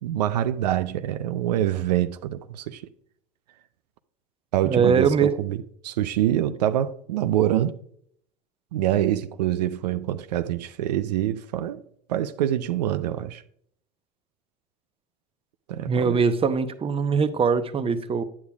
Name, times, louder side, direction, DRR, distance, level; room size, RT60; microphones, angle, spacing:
voice 1, 0.0-2.8 4.5-7.8 8.7-11.8 12.1-13.4 15.7-16.2, right 12 dB, 85° right, 0.4 m, -25 dB
voice 2, 4.6-5.3 15.9-18.2, right 5 dB, 25° right, 0.8 m, -22 dB
9.4 x 8.6 x 2.3 m
hypercardioid pair, 75°, 20 cm